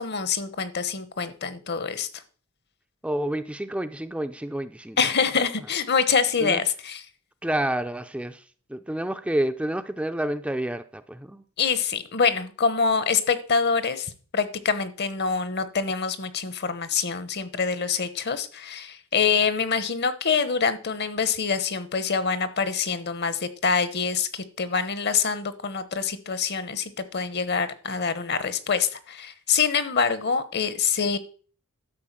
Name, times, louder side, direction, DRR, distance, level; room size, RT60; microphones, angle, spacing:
voice 1, 0.0-2.2 5.0-7.0 11.6-31.2, left 5 dB, 50° left, 14 dB, 1.0 m, -25 dB
voice 2, 3.0-5.0 6.4-6.6 7.4-8.4 8.7-11.4, right 1 dB, 5° right, 8 dB, 0.4 m, -29 dB
12.0 x 4.9 x 7.4 m, 0.42 s
head